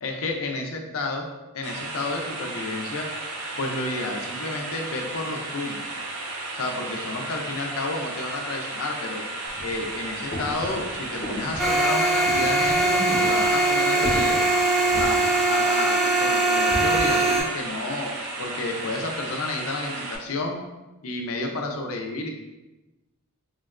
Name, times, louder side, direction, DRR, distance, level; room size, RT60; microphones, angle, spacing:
voice 1, 0.0-1.2 1.5-3.1 3.6-5.8 6.5-9.2 9.6-14.4 14.9-20.6 21.0-22.3, left 2 dB, 75° left, 2 dB, 0.5 m, -31 dB
sound 1, 1.6-20.2, right 2 dB, 75° right, 0.4 m, -34 dB
sound 2, 9.4-15.1, left 1 dB, 50° left, 0.8 m, -35 dB
sound 3, 11.6-17.4, right 2 dB, ahead, 0.4 m, -21 dB
3.7 x 2.1 x 2.4 m, 1.1 s
head